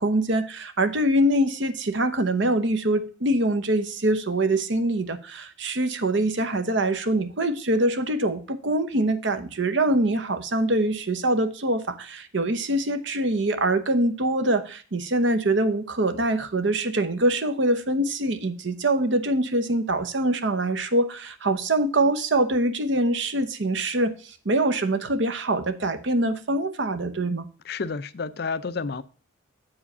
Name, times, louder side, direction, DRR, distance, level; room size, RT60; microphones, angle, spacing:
voice 1, 0.0-27.5, right 1 dB, 60° right, 0.9 m, -24 dB
voice 2, 27.6-29.0, left 4 dB, 50° left, 0.4 m, -30 dB
8.0 x 5.0 x 5.4 m
head